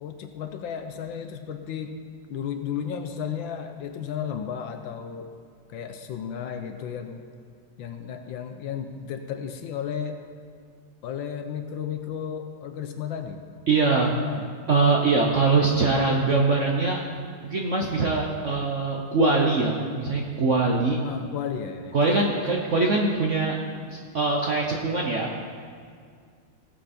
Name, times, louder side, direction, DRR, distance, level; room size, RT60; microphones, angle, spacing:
voice 1, 0.0-2.0 2.3-5.3 5.7-7.2 7.8-10.2 11.0-13.4 14.1-14.6 21.0-22.0, left 8 dB, 70° left, 7 dB, 1.4 m, -33 dB
voice 2, 13.7-14.1 14.7-17.0 17.4-21.0 21.9-23.6 23.9-25.3, right 3 dB, 50° right, -1 dB, 0.9 m, -22 dB
17.5 x 7.6 x 4.3 m, 2.1 s
omnidirectional pair, 2.3 m